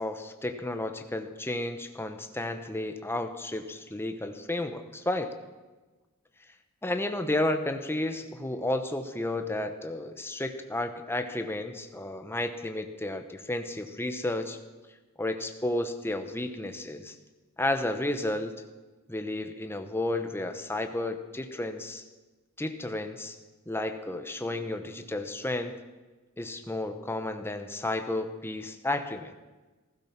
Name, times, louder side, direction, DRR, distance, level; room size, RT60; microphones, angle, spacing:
voice 1, 0.0-5.3 6.8-14.6 15.2-17.2 17.6-18.5 19.1-22.0 22.6-23.4 23.7-25.7 26.4-29.4, left 1 dB, 10° left, 7 dB, 1.0 m, -32 dB
16.0 x 15.0 x 5.9 m, 1.2 s
head